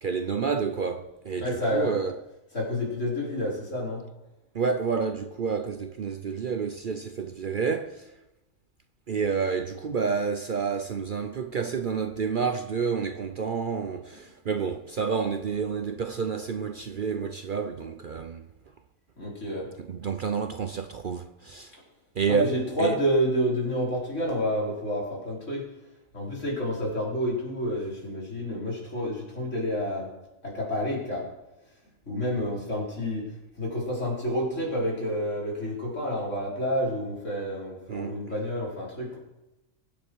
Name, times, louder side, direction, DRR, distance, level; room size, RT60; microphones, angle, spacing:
voice 1, 0.0-2.2 4.5-8.0 9.1-18.5 19.9-21.7 22.2-22.5 22.8-23.0 37.9-38.2, right 5 dB, 50° right, 0.7 m, -29 dB
voice 2, 1.4-2.0 2.5-4.0 19.2-19.7 22.3-25.7 26.1-30.1 30.4-31.3 32.1-33.3 33.6-39.2, equal, 70° left, 5.1 m, -29 dB
23.0 x 9.3 x 4.7 m
omnidirectional pair, 1.3 m